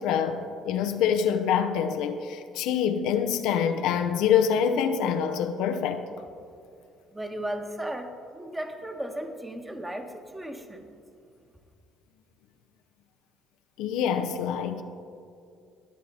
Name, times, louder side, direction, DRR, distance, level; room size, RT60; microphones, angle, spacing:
voice 1, 0.0-6.0 13.8-14.8, left 8 dB, 75° left, 0.6 m, -25 dB
voice 2, 7.1-10.8, right 1 dB, 10° right, 1.4 m, -35 dB
19.0 x 6.5 x 4.2 m
supercardioid pair, 70°, 0 cm